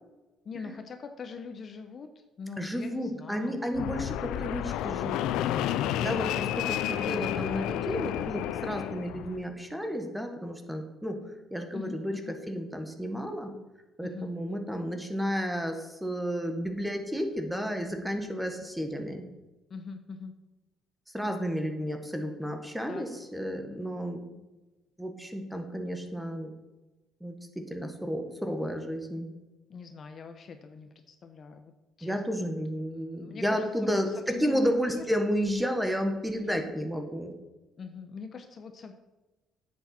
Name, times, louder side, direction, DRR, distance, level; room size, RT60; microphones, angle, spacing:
voice 1, 0.4-2.1 2.4-3.7 11.7-12.4 14.0-14.3 19.7-20.3 22.9-23.2 29.7-31.7 32.0-32.5 33.1-35.1 37.8-38.9, left 5 dB, 40° left, 7 dB, 0.8 m, -42 dB
voice 2, 2.6-5.3 6.0-11.2 11.5-12.1 12.5-13.5 14.0-19.2 21.1-24.3 25.0-26.6 27.2-29.3 32.0-37.3, equal, 5° right, 5 dB, 1.3 m, -32 dB
Fixed-wing aircraft airplane, 3.7-9.4, left 12 dB, 85° left, 0.4 m, -31 dB
10.0 x 8.5 x 4.3 m, 1.1 s
cardioid pair, 140°, 0 cm